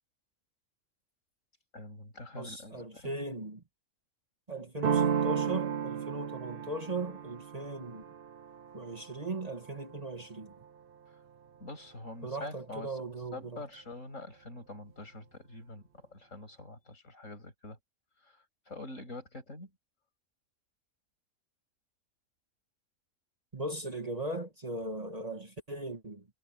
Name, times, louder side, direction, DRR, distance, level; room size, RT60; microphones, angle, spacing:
voice 1, 1.7-3.2 11.6-12.9 13.3-17.8 18.3-18.4 18.7-19.7, left 2 dB, 70° left, 8.5 m, -45 dB
voice 2, 2.4-3.6 4.5-8.0 8.7-10.5 12.2-13.6 23.5-26.3, right 2 dB, 30° right, 1.8 m, -38 dB
sound 1, 4.8-10.4, right 8 dB, 50° right, 0.8 m, -34 dB
omnidirectional pair, 1.4 m